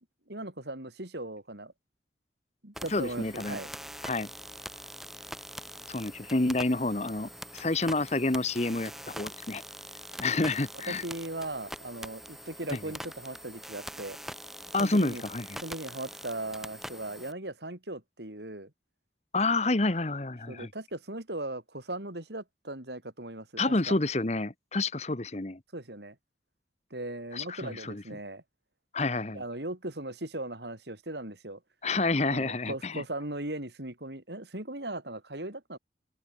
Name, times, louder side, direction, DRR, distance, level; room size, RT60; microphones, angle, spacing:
voice 1, 0.3-1.7 2.6-3.7 10.9-14.2 14.8-15.2 15.6-18.7 20.5-24.0 25.7-26.2 26.9-28.4 29.3-31.6 32.3-35.8, right 1 dB, 70° right, 4.2 m, -38 dB
sound 1, 2.7-17.3, equal, ahead, 3.1 m, -44 dB
voice 2, 2.9-3.6 4.0-4.3 5.9-9.6 10.2-11.0 12.7-12.8 14.7-15.6 19.3-20.7 23.6-25.6 27.3-28.0 28.9-29.4 31.8-33.0, left 2 dB, 35° left, 1.1 m, -29 dB
open air
head